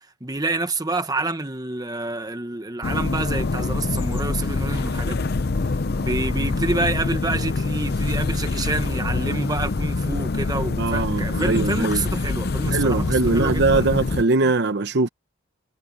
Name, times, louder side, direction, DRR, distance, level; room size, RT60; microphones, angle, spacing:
voice 1, 0.2-5.3 6.0-13.9, right 2 dB, 15° right, 1.1 m, -28 dB
sound 1, 2.8-14.2, left 3 dB, 45° left, 0.6 m, -25 dB
voice 2, 10.8-12.1 12.7-15.1, right 3 dB, 50° right, 0.9 m, -21 dB
head